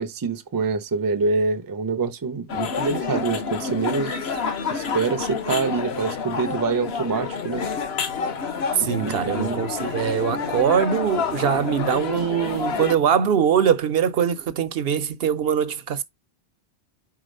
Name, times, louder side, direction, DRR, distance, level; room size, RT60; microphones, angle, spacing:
voice 1, 0.0-4.4 4.7-7.7 8.8-9.6, right 4 dB, 25° right, 0.4 m, -26 dB
sound 1, 2.5-12.9, left 6 dB, 65° left, 1.1 m, -28 dB
voice 2, 8.8-16.0, right 8 dB, 65° right, 0.8 m, -22 dB
4.8 x 3.9 x 5.2 m
omnidirectional pair, 1.1 m